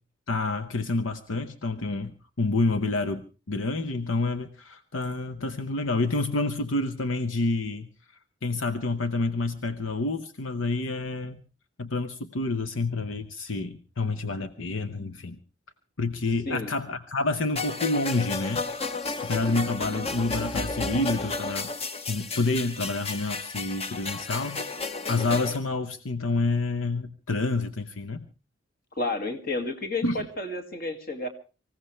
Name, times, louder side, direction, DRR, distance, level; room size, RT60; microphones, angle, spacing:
voice 1, 0.3-7.9 8.4-11.4 11.8-15.4 16.0-18.6 19.2-21.7 22.1-24.6 25.1-28.2 30.0-30.2, left 3 dB, 80° left, 10 dB, 0.9 m, -28 dB
voice 2, 16.5-16.8 29.0-31.3, left 2 dB, 50° left, 6 dB, 2.2 m, -31 dB
sound 1, 17.6-25.6, left 3 dB, 30° left, 1.0 m, -32 dB
25.0 x 16.0 x 3.3 m, 0.33 s
head